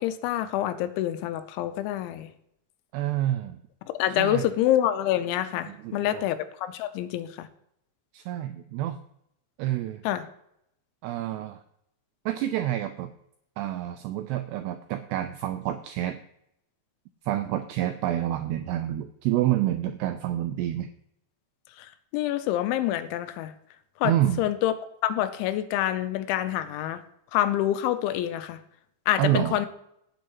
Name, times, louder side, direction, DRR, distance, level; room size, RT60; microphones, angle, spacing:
voice 1, 0.0-2.3 4.0-7.5 10.0-10.3 21.8-21.9 22.1-23.5 24.0-24.7 25.0-27.0 27.3-28.6 29.1-29.7, left 12 dB, 85° left, 11 dB, 3.0 m, -27 dB
voice 2, 2.9-3.6 4.2-4.5 5.7-6.2 8.1-9.0 9.6-10.0 11.0-11.6 12.3-13.1 13.6-16.2 17.2-20.9 24.0-24.5 29.2-29.6, right 13 dB, 85° right, 8 dB, 2.4 m, -28 dB
17.0 x 7.8 x 3.0 m, 0.76 s
omnidirectional pair, 5.4 m